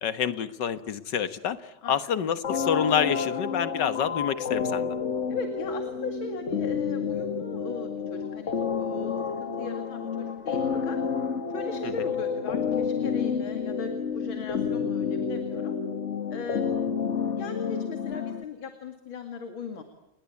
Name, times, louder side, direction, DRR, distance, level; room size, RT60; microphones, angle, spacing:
voice 1, 0.0-5.0 11.8-12.1, left 8 dB, 60° left, 12 dB, 1.9 m, -28 dB
sound 1, 2.4-18.4, left 6 dB, 40° left, 1.3 m, -30 dB
voice 2, 5.3-11.0 11.5-15.8 16.3-16.7 17.4-19.8, left 4 dB, 80° left, 6 dB, 3.1 m, -39 dB
30.0 x 20.5 x 8.5 m, 0.81 s
omnidirectional pair, 2.2 m